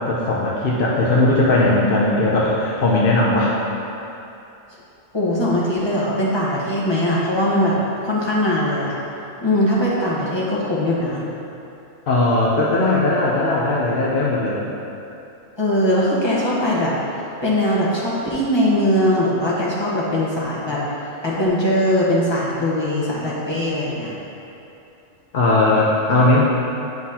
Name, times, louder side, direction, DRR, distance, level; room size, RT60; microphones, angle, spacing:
voice 1, 0.0-3.5 12.1-14.6 25.3-26.4, left 2 dB, 50° left, -5 dB, 0.8 m, -18 dB
voice 2, 5.1-7.8 8.0-9.0 9.4-11.2 15.6-16.9 17.4-20.8 21.2-24.1, left 1 dB, 20° left, -7 dB, 1.2 m, -20 dB
9.1 x 5.7 x 2.9 m, 2.8 s
omnidirectional pair, 1.4 m